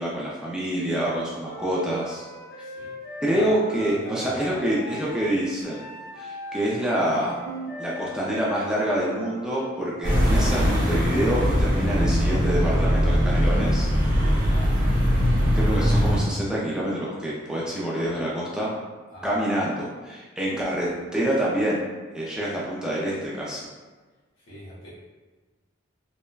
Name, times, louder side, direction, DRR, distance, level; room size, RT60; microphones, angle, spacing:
voice 1, 0.0-2.2 3.2-5.8 6.2-7.3 7.8-13.9 15.5-18.7 19.2-21.8 22.1-23.6, right 1 dB, 5° right, -6 dB, 0.3 m, -26 dB
Wind instrument woodwind instrument, 1.4-9.8, left 1 dB, 55° left, 0.5 m, -40 dB
voice 2, 3.8-4.6 14.2-14.8 19.1-19.5 24.5-24.9, equal, 70° left, -7 dB, 1.0 m, -40 dB
sound 1, 5.1-6.4 6.8-13.5, right 3 dB, 85° right, 0.3 m, -41 dB
sound 2, 10.0-16.2, equal, 40° right, 0.9 m, -21 dB
3.1 x 2.1 x 2.2 m, 1.3 s
head